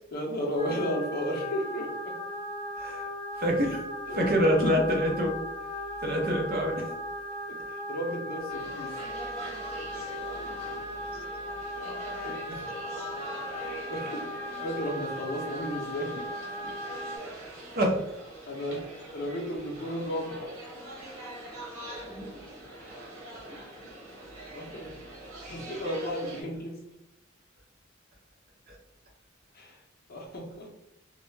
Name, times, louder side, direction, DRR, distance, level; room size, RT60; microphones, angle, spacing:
voice 1, 0.1-2.2 4.1-4.5 7.5-9.0 12.2-12.6 13.9-14.3 14.6-16.3 18.5-20.5 21.8-21.9 24.5-24.9 25.4-26.8 29.5-29.8 30.1-30.7, equal, 50° left, 0 dB, 0.6 m, -34 dB
sound 1, 0.6-17.2, left 1 dB, 5° left, 1.1 m, -37 dB
voice 2, 2.8-3.1 3.4-3.8 4.1-5.4 6.0-6.9 9.9-10.4 10.9-11.3 12.1-12.6 16.6-16.7 17.0-18.1 21.9-22.4 23.0-23.1 23.3-23.6 28.7-28.8, equal, 45° right, 0 dB, 0.6 m, -28 dB
sound 2, 8.5-26.4, right 1 dB, 85° right, 0.9 m, -44 dB
2.3 x 2.1 x 3.2 m, 0.84 s
head